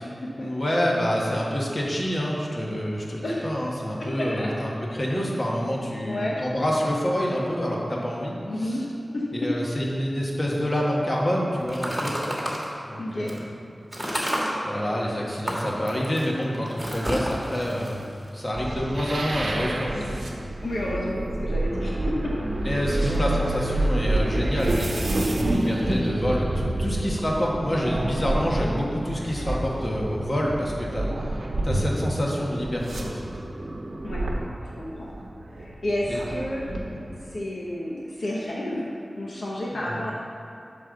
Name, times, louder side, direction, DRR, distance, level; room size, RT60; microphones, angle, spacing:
voice 1, 0.4-8.4 9.3-12.2 12.8-13.5 14.6-18.1 18.3-20.2 22.6-31.1 31.6-33.2 36.1-36.2 36.9-37.0 39.9-40.0, equal, 45° left, -3 dB, 1.5 m, -27 dB
voice 2, 3.2-3.5 4.0-4.5 6.0-6.4 8.4-8.8 9.1-9.6 13.0-13.3 15.1-15.2 17.3-17.8 20.6-22.5 23.0-23.2 34.0-34.3 34.8-35.1 35.6-36.6 37.3-40.1, left 1 dB, 85° left, -4 dB, 0.9 m, -31 dB
sound 1, 11.7-12.7 13.3-13.4 13.9-14.5 15.3-18.8, equal, 5° right, 1.8 m, -30 dB
sound 2, 18.5-37.4, right 1 dB, 90° right, 0.9 m, -29 dB
sound 3, 22.3-34.5, right 1 dB, 40° right, 0.4 m, -39 dB
5.5 x 5.5 x 6.6 m, 2.8 s
wide cardioid pair, 55°, 0 cm